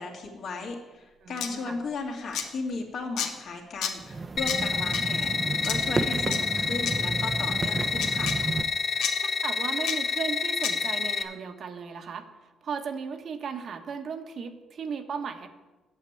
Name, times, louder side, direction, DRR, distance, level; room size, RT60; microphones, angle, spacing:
voice 1, 0.0-5.4 5.6-8.3, left 3 dB, 65° left, 0 dB, 2.4 m, -36 dB
voice 2, 1.2-1.8 9.2-15.5, right 6 dB, 60° right, 6 dB, 1.2 m, -36 dB
wooden fish stick, 1.4-1.5 2.3-2.5 3.2-3.3 3.8-3.9 4.5-4.6 4.9-5.0 5.6-5.8 6.3-6.4 6.9-7.0 8.0-8.4 9.0-9.1 9.9-10.0 10.6-10.7, left 8 dB, 85° left, 1.2 m, -30 dB
sound 1, 4.0-8.6, right 3 dB, 30° right, 0.6 m, -32 dB
sound 2, 4.4-11.2, left 5 dB, 45° left, 1.1 m, -28 dB
8.7 x 7.4 x 8.2 m, 1.2 s
cardioid pair, 90°, 0 cm